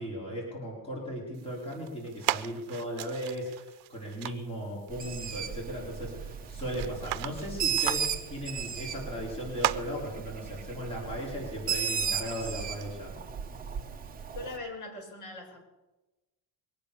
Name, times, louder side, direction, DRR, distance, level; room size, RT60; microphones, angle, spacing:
voice 1, 0.0-13.1, equal, 15° left, -4 dB, 4.6 m, -37 dB
sound 1, 1.3-12.9, right 18 dB, 80° right, 0.7 m, -39 dB
Bird, 4.9-14.6, right 7 dB, 20° right, 1.0 m, -35 dB
voice 2, 14.3-15.6, left 2 dB, 45° left, -2 dB, 6.7 m, -40 dB
22.5 x 9.1 x 6.9 m, 1.1 s
cardioid pair, 175°, 40 cm